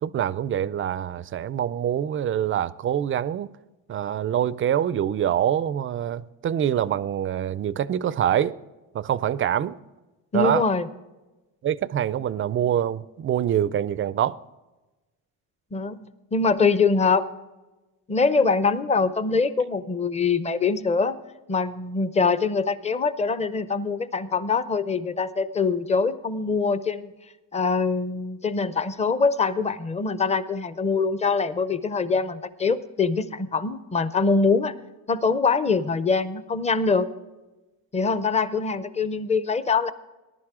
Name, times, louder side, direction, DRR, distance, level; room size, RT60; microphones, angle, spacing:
voice 1, 0.0-3.5 3.9-8.5 8.9-9.7 10.3-10.6 11.6-14.4, right 10 dB, 30° right, 0.4 m, -25 dB
voice 2, 10.3-10.8 15.7-16.1 16.3-17.3 18.1-21.2 21.5-27.1 27.5-34.8 35.1-37.1 37.9-39.9, left 4 dB, 15° left, 0.6 m, -23 dB
19.0 x 11.0 x 3.6 m
cardioid pair, 130°, 42 cm